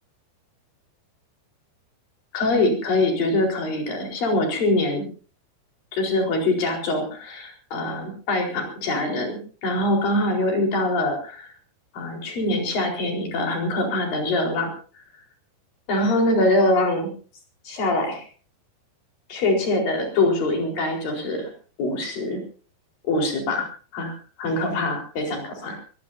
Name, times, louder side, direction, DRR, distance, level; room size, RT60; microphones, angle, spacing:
voice 1, 2.3-5.1 5.9-11.5 11.9-14.7 14.9-15.0 15.9-17.1 17.6-18.3 19.3-21.5 21.8-22.4 23.0-23.7 23.9-25.8, left 2 dB, 55° left, 1 dB, 6.0 m, -24 dB
24.0 x 18.0 x 2.7 m, 0.38 s
omnidirectional pair, 4.9 m